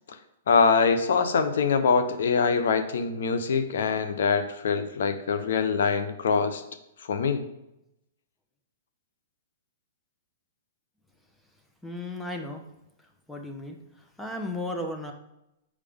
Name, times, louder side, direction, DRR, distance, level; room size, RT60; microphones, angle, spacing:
voice 1, 0.5-6.6 7.1-7.4, left 5 dB, 75° left, 10 dB, 0.8 m, -24 dB
voice 2, 11.8-12.6 13.3-13.8 14.2-15.1, left 1 dB, 5° left, 3 dB, 0.9 m, -34 dB
7.3 x 4.9 x 3.6 m, 0.86 s
hypercardioid pair, 140°, 0 cm